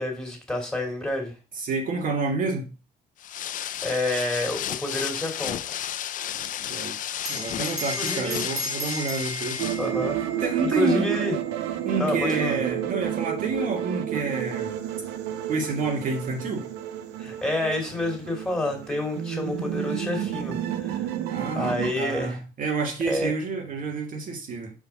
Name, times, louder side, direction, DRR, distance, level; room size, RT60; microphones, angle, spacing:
voice 1, 0.0-1.3 3.8-5.6 8.0-8.4 9.8-10.3 10.6-11.4 12.0-12.6 17.2-21.1 21.5-22.4 23.1-23.3, left 1 dB, 5° left, 2.8 m, -28 dB
voice 2, 1.6-2.7 6.7-7.0 7.3-9.6 10.4-11.1 11.9-14.8 15.5-16.6 21.3-24.7, right 4 dB, 55° right, 1.9 m, -29 dB
sound 1, 3.2-9.9, left 11 dB, 50° left, 0.5 m, -32 dB
Bell, 7.2-12.1, right 1 dB, 20° right, 1.8 m, -37 dB
sound 2, 9.6-21.9, right 10 dB, 85° right, 0.9 m, -30 dB
5.2 x 5.1 x 5.8 m
cardioid pair, 110°, 17 cm